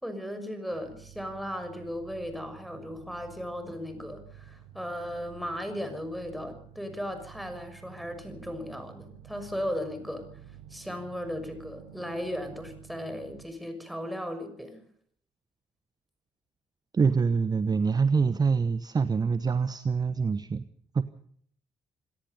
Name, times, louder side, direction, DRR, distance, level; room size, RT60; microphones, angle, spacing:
voice 1, 0.0-10.2 10.7-14.8, equal, ahead, 8 dB, 6.4 m, -36 dB
sound 1, 0.7-13.5, right 10 dB, 70° right, 2.0 m, -50 dB
voice 2, 16.9-20.6 20.9-21.0, right 5 dB, 30° right, 14 dB, 1.0 m, -25 dB
27.0 x 18.0 x 5.4 m, 0.63 s
figure-of-eight pair, 45°, 14 cm